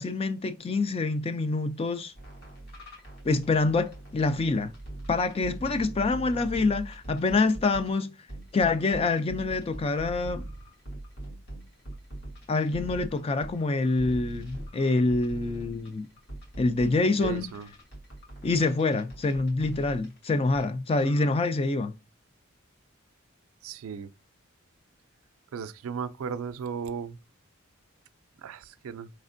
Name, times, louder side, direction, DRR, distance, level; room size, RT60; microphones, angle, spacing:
voice 1, 0.0-2.1 3.2-4.7 5.1-8.1 8.5-10.5 12.5-16.1 16.6-17.5 18.4-21.9, left 3 dB, 30° left, 0.3 m, -26 dB
sound 1, 2.2-7.9 8.3-20.6 20.9-21.4, right 1 dB, 50° left, 1.3 m, -42 dB
voice 2, 17.0-17.7 23.6-24.1 25.5-27.2 28.4-29.1, right 6 dB, 80° right, 0.4 m, -35 dB
4.2 x 3.3 x 2.5 m
head